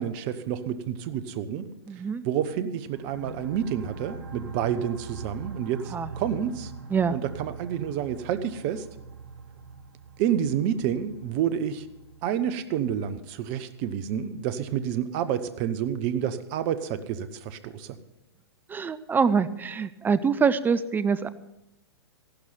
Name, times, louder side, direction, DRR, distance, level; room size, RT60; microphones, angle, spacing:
voice 1, 0.0-1.7 1.9-6.7 7.1-8.9 10.2-11.9 12.2-18.0, right 9 dB, 40° right, 12 dB, 1.1 m, -29 dB
voice 2, 1.9-2.2 5.9-6.1 6.9-7.2 18.7-21.3, right 6 dB, 15° right, 14 dB, 0.6 m, -24 dB
sound 1, 2.9-14.2, right 5 dB, 70° right, 1.5 m, -43 dB
15.0 x 12.0 x 5.8 m, 0.86 s
figure-of-eight pair, 110°, 13 cm